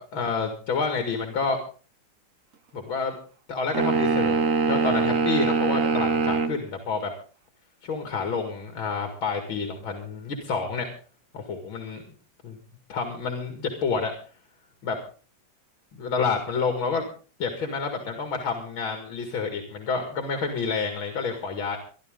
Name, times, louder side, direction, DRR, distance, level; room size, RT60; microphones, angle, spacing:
voice 1, 0.0-1.6 2.7-3.2 3.5-4.4 4.7-7.1 7.8-10.9 11.3-12.0 12.4-12.6 12.9-14.1 14.8-15.0 15.9-17.1 17.4-21.8, left 5 dB, 85° left, 5 dB, 2.9 m, -29 dB
sound 1, 3.7-6.6, right 4 dB, 50° right, 1.3 m, -23 dB
23.5 x 11.5 x 3.8 m, 0.39 s
omnidirectional pair, 2.2 m